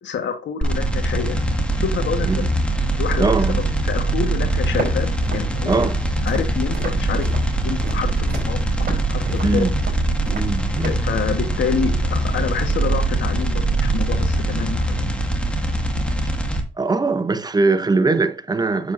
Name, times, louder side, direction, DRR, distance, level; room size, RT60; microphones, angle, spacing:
voice 1, 0.0-2.5 3.0-3.3 3.8-5.9 6.2-7.3 7.6-9.7 10.8-15.1, left 7 dB, 65° left, 1.6 m, -27 dB
sound 1, 0.6-16.6, right 2 dB, 5° left, 1.8 m, -22 dB
voice 2, 3.2-3.6 5.6-6.1 9.4-9.8 10.3-11.0 16.8-18.9, right 3 dB, 20° right, 0.8 m, -21 dB
Walk footsteps, 4.7-11.1, right 4 dB, 50° right, 4.2 m, -33 dB
8.0 x 7.1 x 2.7 m
cardioid pair, 90°, 20 cm